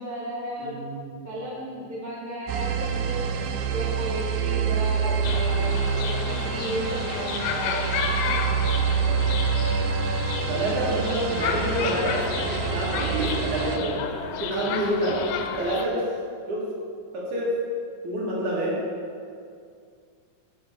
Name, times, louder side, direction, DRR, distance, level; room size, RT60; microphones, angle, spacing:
voice 1, 0.0-0.7 1.2-3.2 3.7-8.3 11.4-12.0, equal, 45° left, -9 dB, 0.5 m, -34 dB
voice 2, 0.6-1.2 10.5-14.1 14.4-15.2 15.4-16.0 16.5-16.6 17.1-17.5 18.0-18.7, right 1 dB, 65° right, -5 dB, 2.9 m, -27 dB
sound 1, 2.5-13.8, right 6 dB, 90° right, 2.3 m, -27 dB
sound 2, 5.2-15.9, left 7 dB, 80° left, 2.1 m, -32 dB
7.7 x 5.5 x 4.9 m, 2.3 s
omnidirectional pair, 4.0 m